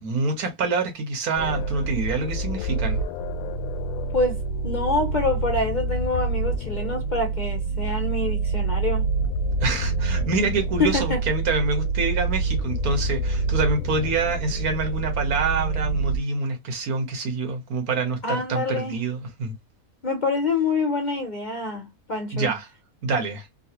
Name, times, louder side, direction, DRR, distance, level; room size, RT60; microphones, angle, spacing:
voice 1, 0.0-3.0 9.6-19.5 22.3-22.7 23.0-23.5, right 3 dB, 85° right, 1.6 m, -26 dB
sound 1, 1.4-16.2, right 3 dB, 80° left, 1.0 m, -27 dB
voice 2, 4.1-9.1 10.8-11.2 18.2-19.0 20.0-22.5, left 3 dB, 50° left, 0.6 m, -26 dB
3.8 x 2.4 x 2.8 m
omnidirectional pair, 1.5 m